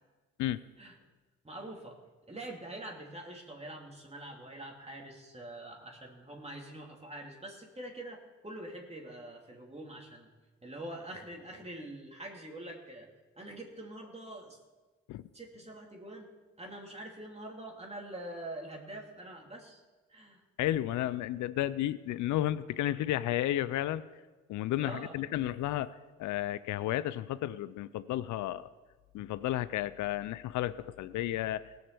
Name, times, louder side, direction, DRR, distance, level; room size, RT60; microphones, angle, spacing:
voice 1, 1.4-2.0 2.3-10.3 10.6-13.1 13.4-14.6 15.3-16.3 16.6-19.8 20.1-20.4 24.8-25.2, right 1 dB, 20° right, -1 dB, 2.7 m, -45 dB
voice 2, 20.6-24.0 24.5-28.7 29.1-31.8, left 13 dB, 85° left, 17 dB, 0.5 m, -32 dB
17.5 x 6.6 x 6.8 m, 1.3 s
supercardioid pair, 55°, 29 cm